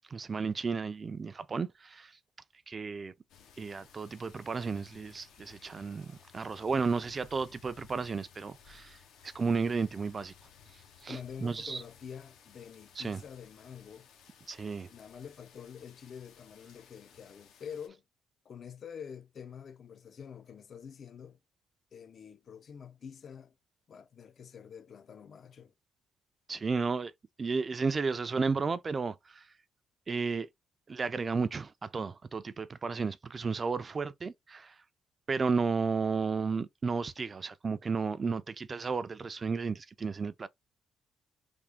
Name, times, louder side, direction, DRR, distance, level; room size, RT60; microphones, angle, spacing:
voice 1, 0.1-2.1 2.7-3.1 3.6-9.0 9.2-10.3 11.0-11.8 13.0-13.2 14.5-14.9 26.5-27.1 27.4-29.4 30.1-30.5 30.9-34.7 35.3-40.5, right 4 dB, 35° right, 0.4 m, -33 dB
sound 1, 3.3-17.9, left 7 dB, 85° left, 0.7 m, -58 dB
voice 2, 11.1-14.1 14.9-18.0 18.4-21.4 21.9-23.5 23.9-25.7, left 7 dB, 55° left, 0.5 m, -47 dB
3.5 x 2.1 x 3.5 m
cardioid pair, 90°, 0 cm